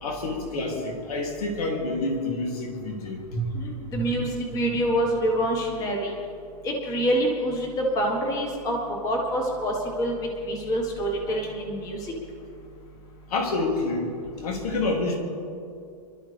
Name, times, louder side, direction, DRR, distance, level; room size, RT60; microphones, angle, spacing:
voice 1, 0.0-3.5 3.9-4.1 13.3-14.1 14.4-15.2, left 2 dB, 60° left, 1 dB, 3.0 m, -28 dB
voice 2, 3.5-6.1 6.6-8.8 9.0-10.2 10.4-12.0, right 1 dB, 15° left, 0 dB, 1.7 m, -26 dB
26.0 x 12.5 x 3.5 m, 2.5 s
supercardioid pair, 170°, 21 cm